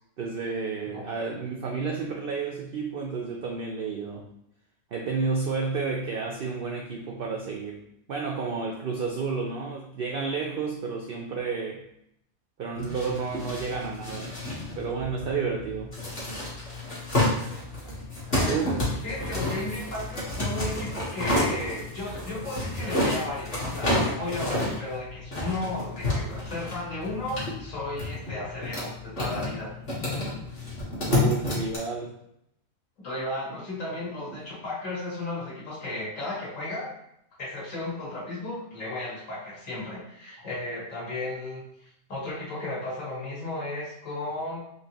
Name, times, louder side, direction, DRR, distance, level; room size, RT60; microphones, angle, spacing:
voice 1, 0.2-4.2 4.9-7.8 8.1-11.8 12.6-14.4 14.8-16.0 18.5-18.7 31.1-32.1 34.3-34.4, right 5 dB, 75° right, 0 dB, 0.5 m, -31 dB
sound 1, 12.7-31.8, left 1 dB, 45° left, 1.3 m, -30 dB
voice 2, 18.3-29.8 33.0-36.9 37.4-41.6 42.1-44.6, left 2 dB, 65° left, -6 dB, 1.9 m, -34 dB
4.4 x 2.8 x 2.9 m, 0.77 s
omnidirectional pair, 1.5 m